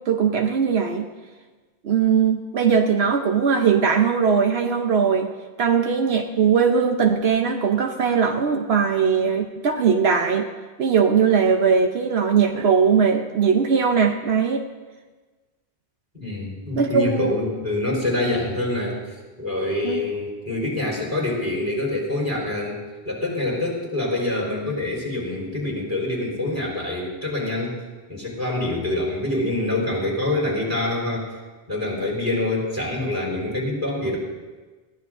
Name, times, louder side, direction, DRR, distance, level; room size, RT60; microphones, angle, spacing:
voice 1, 0.1-1.1 1.8-5.3 5.6-10.5 10.8-14.6 16.8-17.3 19.8-20.0, right 6 dB, 80° right, 3 dB, 1.1 m, -20 dB
voice 2, 16.1-19.0 19.4-22.8 23.0-27.8 28.1-31.3 31.7-34.2, left 2 dB, 15° right, -4 dB, 4.4 m, -25 dB
20.5 x 15.5 x 2.6 m, 1.3 s
omnidirectional pair, 1.1 m